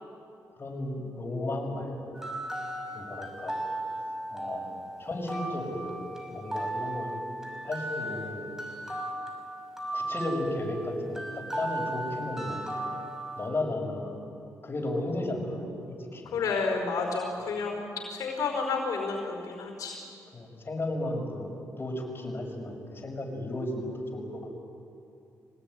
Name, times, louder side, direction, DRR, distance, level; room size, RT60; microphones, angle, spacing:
voice 1, 0.6-2.2 2.9-3.6 4.3-7.1 7.6-8.5 9.9-12.7 13.4-14.1 14.6-15.6 16.1-16.4 20.3-21.5 21.8-24.4, left 1 dB, 35° left, 1 dB, 6.3 m, -34 dB
sound 1, 2.2-13.5, right 1 dB, 5° right, 5.8 m, -36 dB
voice 2, 16.3-17.8 18.1-20.0, left 4 dB, 75° left, 2 dB, 4.8 m, -30 dB
23.5 x 18.5 x 9.7 m, 2.6 s
cardioid pair, 65°, 6 cm